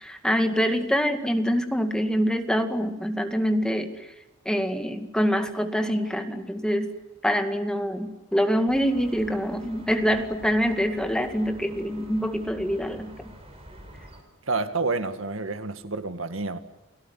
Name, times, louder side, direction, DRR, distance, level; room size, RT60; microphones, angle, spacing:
voice 1, 0.0-3.9 4.5-6.9 7.2-13.3, equal, 5° left, 2.1 m, -25 dB
sound 1, 8.7-14.2, equal, 30° right, 5.5 m, -47 dB
voice 2, 14.5-16.6, right 3 dB, 85° right, 1.9 m, -29 dB
29.5 x 17.5 x 9.8 m
head